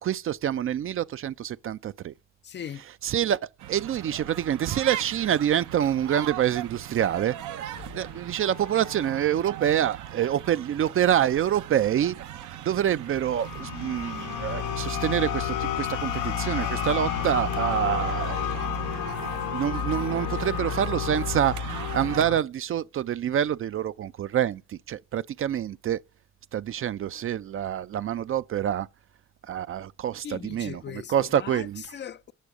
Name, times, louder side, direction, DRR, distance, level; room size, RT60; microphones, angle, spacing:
voice 1, 0.0-2.1 3.0-3.4 3.7-7.3 7.9-12.2 12.6-18.5 19.5-26.0 26.5-28.9 29.5-30.8 31.1-31.8, right 10 dB, 45° right, 0.4 m, -26 dB
voice 2, 2.4-2.8 30.2-32.3, left 9 dB, 40° left, 0.4 m, -39 dB
sound 1, 3.6-22.3, right 12 dB, 75° right, 0.7 m, -39 dB
sound 2, 7.7-9.9, left 13 dB, 55° left, 0.9 m, -49 dB
sound 3, 13.0-22.4, left 9 dB, 80° left, 0.6 m, -31 dB
8.3 x 6.1 x 3.6 m
cardioid pair, 90°, 30 cm